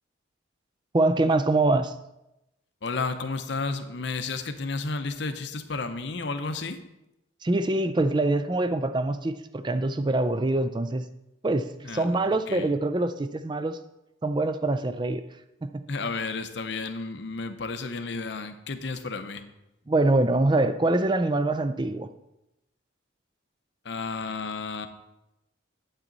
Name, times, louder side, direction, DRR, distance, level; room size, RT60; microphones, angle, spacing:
voice 1, 0.9-1.9 7.4-11.1 11.4-13.8 14.2-15.2 15.6-15.8 19.9-22.1, right 2 dB, 25° right, 12 dB, 0.4 m, -24 dB
voice 2, 2.8-6.8 11.8-12.0 12.5-12.7 15.9-19.4 23.8-24.9, left 3 dB, 65° left, 8 dB, 0.7 m, -32 dB
9.0 x 8.1 x 4.0 m, 0.93 s
head